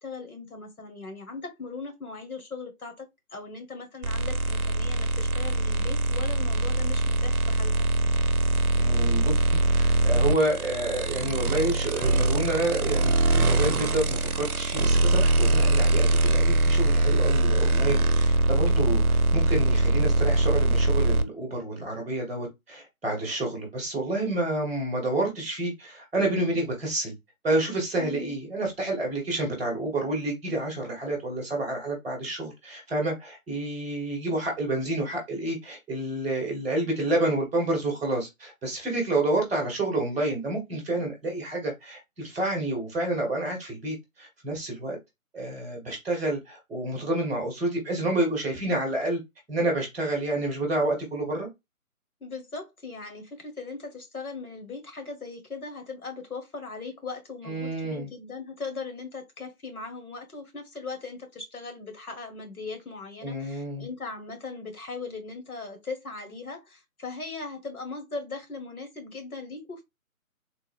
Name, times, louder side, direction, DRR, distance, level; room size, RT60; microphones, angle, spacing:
voice 1, 0.0-7.7 28.0-28.4 52.2-69.8, left 4 dB, 80° left, 1.6 m, -39 dB
sound 1, 4.0-21.2, right 2 dB, 80° right, 0.7 m, -23 dB
voice 2, 8.7-27.1 27.4-45.0 45.3-49.2 49.5-51.5 57.4-58.1 63.2-63.9, right 2 dB, ahead, 0.8 m, -29 dB
3.6 x 2.0 x 3.4 m
figure-of-eight pair, 155°, 44 cm